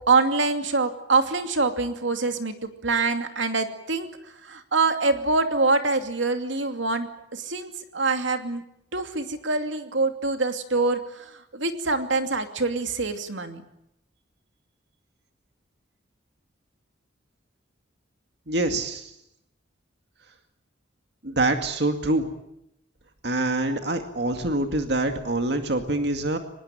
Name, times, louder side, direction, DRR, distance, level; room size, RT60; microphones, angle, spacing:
voice 1, 0.1-4.1 4.4-8.6 8.9-13.6, right 3 dB, 80° right, 7 dB, 2.6 m, -25 dB
voice 2, 18.5-19.1 21.2-22.3 23.2-26.4, right 2 dB, 60° right, 6 dB, 2.3 m, -25 dB
25.0 x 21.0 x 9.0 m, 0.79 s
head